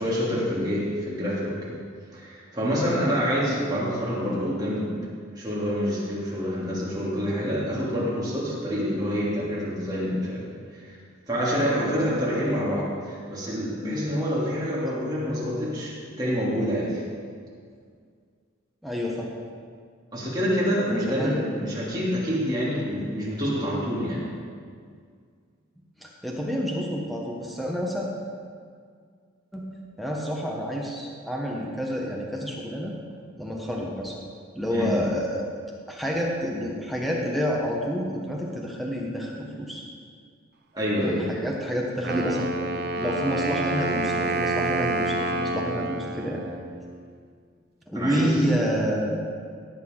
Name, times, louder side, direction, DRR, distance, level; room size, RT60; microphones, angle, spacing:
voice 1, 0.0-1.8 2.1-4.9 5.3-10.4 10.7-10.9 11.3-17.0 20.1-24.2 34.7-34.9 40.7-41.3 47.9-48.7, equal, 20° right, -8 dB, 3.0 m, -27 dB
voice 2, 18.8-19.3 21.1-21.4 26.0-28.1 29.5-29.7 30.0-32.9 33.4-34.1 34.5-35.4 35.9-39.8 41.0-42.5 42.9-46.4 47.9-49.2, equal, ahead, -3 dB, 1.2 m, -28 dB
Wind instrument woodwind instrument, 42.0-47.0, right 2 dB, 45° right, 0.6 m, -28 dB
17.0 x 8.4 x 3.9 m, 2.1 s
head